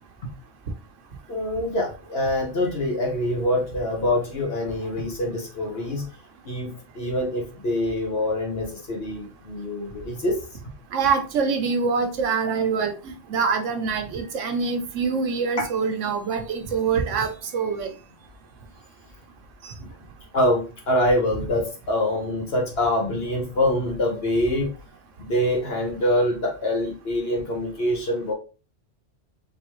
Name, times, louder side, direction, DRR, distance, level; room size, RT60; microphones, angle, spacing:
voice 1, 1.3-6.1 6.4-10.4 15.6-15.7 20.3-24.7 25.2-28.3, left 1 dB, 55° left, -1 dB, 1.3 m, -25 dB
voice 2, 10.9-12.9 13.3-17.9 19.6-19.7, right 5 dB, 80° right, 6 dB, 1.1 m, -24 dB
3.9 x 3.5 x 3.0 m, 0.32 s
omnidirectional pair, 1.3 m